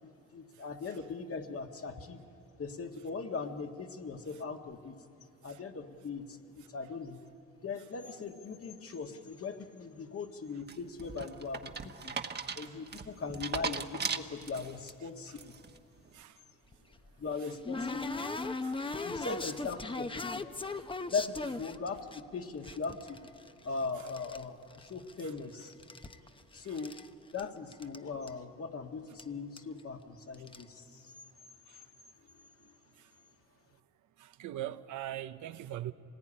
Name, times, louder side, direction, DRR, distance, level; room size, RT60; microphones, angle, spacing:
voice 1, 0.0-2.2 2.6-5.0 5.4-7.2 7.6-12.2 12.6-15.5 17.2-18.1 19.0-20.4 21.1-23.2 23.6-25.7 26.5-27.0 27.3-31.1 32.7-32.8, left 4 dB, 50° left, 1.8 m, -39 dB
sound 1, 10.7-14.9 15.4-15.8, right 5 dB, 35° right, 1.2 m, -38 dB
voice 2, 12.7-13.1 15.3-15.4 16.1-16.4 17.4-17.6 18.4-18.8 25.2-25.3 26.6-26.8 31.7-31.8 33.0-33.1 34.2-35.9, right 12 dB, 80° right, 0.8 m, -43 dB
sound 2, 16.7-22.2 22.6-24.4 24.7-25.5 25.7-27.1 27.4-27.5 27.7-28.0 28.3-28.4 29.2-29.3 29.6-29.8 30.3-30.6, left 3 dB, 15° left, 0.8 m, -38 dB
25.5 x 19.5 x 9.9 m
cardioid pair, 90°, 30 cm